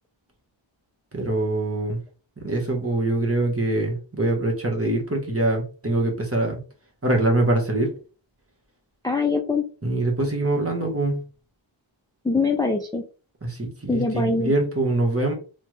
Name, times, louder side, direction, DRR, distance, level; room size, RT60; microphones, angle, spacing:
voice 1, 1.1-2.0 2.4-6.6 7.0-7.9 9.8-11.2 13.4-15.3, right 2 dB, 30° right, 1.1 m, -24 dB
voice 2, 9.0-9.6 12.2-13.0 13.9-14.5, left 4 dB, 10° left, 0.3 m, -23 dB
3.3 x 2.2 x 3.1 m
wide cardioid pair, 50°, 50 cm